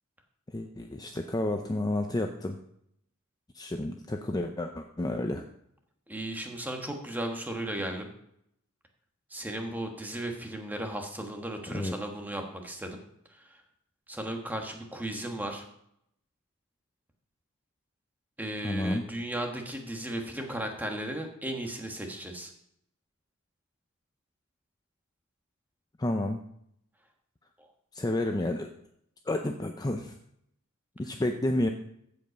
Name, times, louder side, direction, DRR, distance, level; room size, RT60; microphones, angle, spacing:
voice 1, 0.5-2.6 3.5-5.4 11.7-12.0 18.6-19.1 26.0-26.4 27.9-28.7 29.3-30.2 31.0-31.7, left 1 dB, 15° left, 4 dB, 0.5 m, -30 dB
voice 2, 6.1-8.1 9.3-13.0 13.3-13.6 14.1-15.6 18.4-22.5 27.6-27.7, right 1 dB, 10° right, 3 dB, 1.3 m, -35 dB
15.0 x 5.4 x 5.1 m, 0.74 s
head